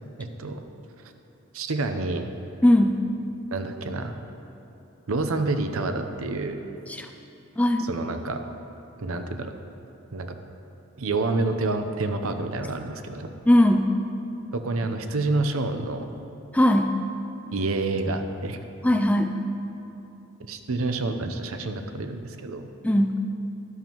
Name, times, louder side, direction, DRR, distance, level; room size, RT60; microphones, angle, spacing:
voice 1, 0.2-0.6 1.5-2.3 3.5-4.1 5.1-6.6 7.8-8.4 9.0-9.6 10.1-10.4 11.0-13.3 14.5-16.1 17.5-18.6 20.5-22.7, right 2 dB, 90° right, 7 dB, 0.7 m, -28 dB
voice 2, 2.6-3.0 6.9-7.1 7.6-7.9 13.5-13.9 16.5-17.0 18.8-19.4 22.8-23.2, left 1 dB, 5° left, 5 dB, 0.4 m, -19 dB
12.5 x 11.5 x 3.0 m, 2.9 s
head